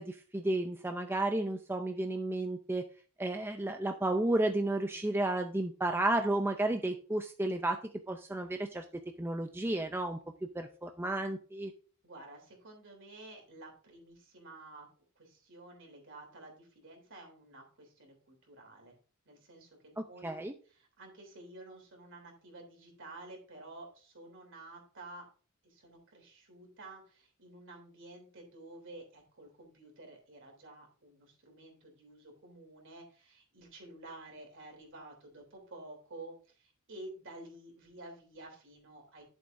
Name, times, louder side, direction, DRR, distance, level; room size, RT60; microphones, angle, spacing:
voice 1, 0.0-2.9 3.2-7.8 8.1-11.7 20.0-20.5, right 2 dB, 10° right, 5 dB, 0.5 m, -32 dB
voice 2, 12.0-14.9 15.1-19.0 19.2-20.4 20.7-25.3 25.6-39.2, right 2 dB, 60° right, 1 dB, 3.3 m, -51 dB
11.5 x 7.1 x 2.6 m, 0.38 s
head